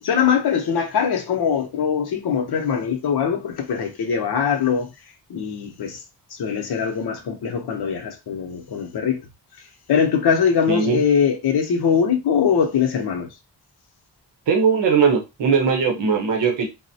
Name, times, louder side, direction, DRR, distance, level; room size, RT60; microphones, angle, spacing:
voice 1, 0.0-4.9 5.3-6.0 6.3-9.3 9.6-13.3, left 7 dB, 65° left, 0.7 m, -22 dB
voice 2, 10.7-11.0 14.5-16.7, right 5 dB, 85° right, 0.9 m, -19 dB
3.7 x 2.0 x 2.7 m
wide cardioid pair, 115°, 42 cm